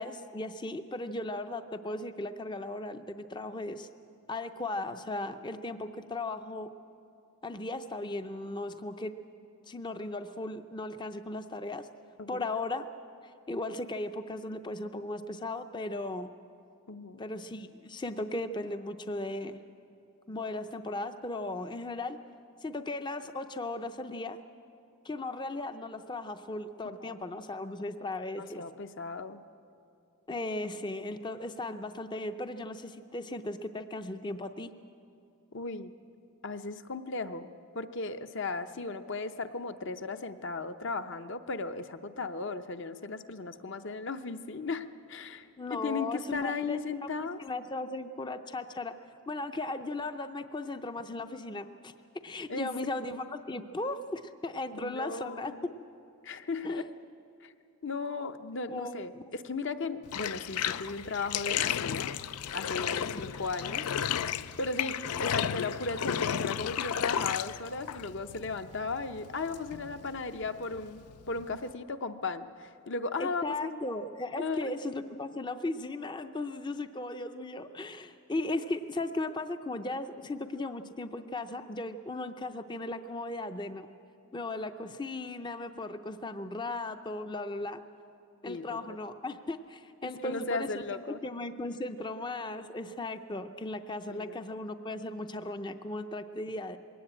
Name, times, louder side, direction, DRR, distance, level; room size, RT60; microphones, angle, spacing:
voice 1, 0.0-3.9 4.3-6.7 7.4-9.1 9.7-11.9 12.3-12.8 13.5-16.3 17.2-19.6 20.3-22.2 22.6-24.4 25.0-28.6 30.3-34.7 45.6-47.1 47.4-48.9 49.3-51.9 52.2-55.5 56.6-56.8 58.7-59.1 63.1-63.3 73.2-83.9 84.3-87.8 88.4-90.7 91.1-96.8, left 2 dB, 20° left, 9 dB, 0.5 m, -37 dB
voice 2, 16.9-17.2 27.0-27.1 28.4-29.4 35.5-35.9 36.4-37.5 37.7-47.4 52.5-52.7 54.7-55.7 56.2-56.8 57.4-57.5 57.8-62.2 62.5-64.3 64.6-71.0 71.3-73.8 74.4-74.7 88.5-89.0 90.0-91.2 94.1-94.4, left 3 dB, 55° left, 9 dB, 0.8 m, -36 dB
Bathtub (filling or washing), 60.1-71.7, left 9 dB, 90° left, 0.5 m, -34 dB
21.5 x 17.5 x 8.8 m, 2.6 s
head